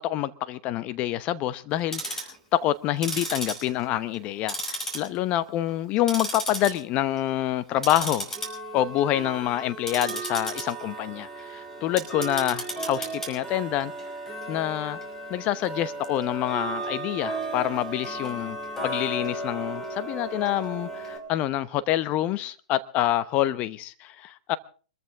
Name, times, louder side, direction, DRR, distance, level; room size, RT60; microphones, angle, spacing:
voice 1, 0.0-8.4 8.7-13.9 14.5-15.0 15.3-18.6 18.8-24.6, left 13 dB, 35° left, 0.9 m, -27 dB
Tick-tock, 1.7-2.4 2.9-4.2 4.5-5.4 5.7-6.7 7.1-7.3 7.8-21.2, right 1 dB, 10° left, 5.4 m, -34 dB
25.0 x 14.0 x 3.6 m
hypercardioid pair, 115°, 4 cm